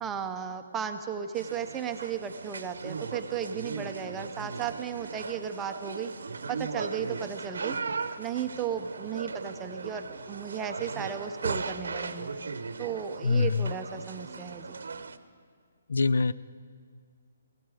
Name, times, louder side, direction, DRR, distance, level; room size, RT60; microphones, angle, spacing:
voice 1, 0.0-6.1 6.5-7.8 8.2-12.3 12.8-14.8, right 8 dB, 10° right, 6 dB, 0.6 m, -35 dB
sound 1, 1.4-15.2, right 4 dB, 80° right, 0.7 m, -37 dB
voice 2, 13.2-13.7 15.9-16.3, left 4 dB, 80° left, 16 dB, 0.4 m, -24 dB
16.0 x 15.5 x 4.9 m, 2.1 s
hypercardioid pair, 170°, 0 cm